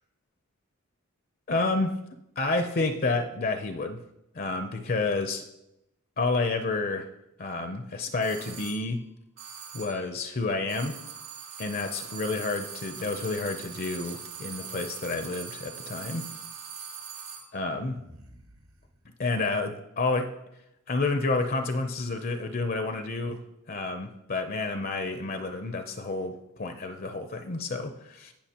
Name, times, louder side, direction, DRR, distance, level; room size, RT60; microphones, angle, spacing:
voice 1, 1.5-2.0 2.4-4.0 4.3-5.4 6.2-7.1 7.4-9.1 9.7-11.0 11.6-16.3 17.5-18.0 19.2-20.3 20.9-23.4 23.7-28.3, left 3 dB, 40° left, 7 dB, 0.6 m, -29 dB
sound 1, 8.2-8.9 9.4-10.1 10.7-17.5, right 7 dB, 90° right, 3.3 m, -42 dB
sound 2, 12.8-15.4 15.7-16.6 17.0-17.3 17.7-19.3, right 4 dB, 70° right, 1.2 m, -53 dB
17.5 x 5.9 x 2.9 m, 0.86 s
head